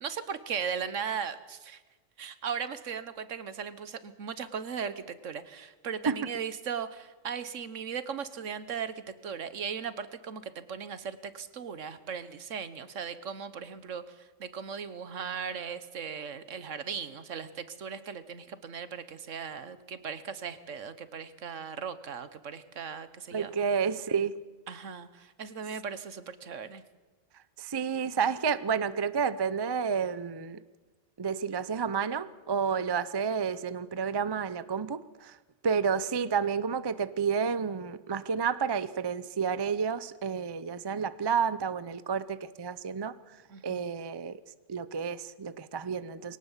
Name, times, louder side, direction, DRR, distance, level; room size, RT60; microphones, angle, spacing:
voice 1, 0.0-1.8 2.2-23.5 24.7-26.8 43.5-43.9, right 7 dB, 65° right, 13 dB, 1.4 m, -38 dB
voice 2, 23.3-24.4 27.6-30.6 31.2-35.4 35.6-43.1 43.6-44.4 44.7-46.4, right 6 dB, 35° right, 15 dB, 0.4 m, -30 dB
22.0 x 18.0 x 7.3 m, 1.2 s
omnidirectional pair, 1.4 m